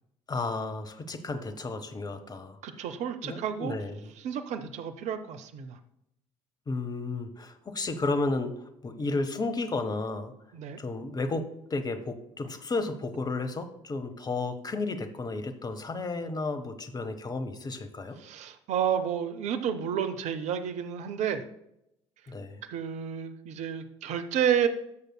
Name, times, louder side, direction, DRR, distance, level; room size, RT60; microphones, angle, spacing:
voice 1, 0.3-2.6 3.2-4.1 6.7-10.3 10.8-18.2 22.3-22.6, left 3 dB, 25° left, 8 dB, 0.8 m, -33 dB
voice 2, 2.6-3.7 4.2-5.8 10.5-10.8 18.2-21.4 22.6-24.7, right 8 dB, 50° right, 9 dB, 0.6 m, -30 dB
14.0 x 6.6 x 2.2 m, 0.80 s
figure-of-eight pair, 50°, 15 cm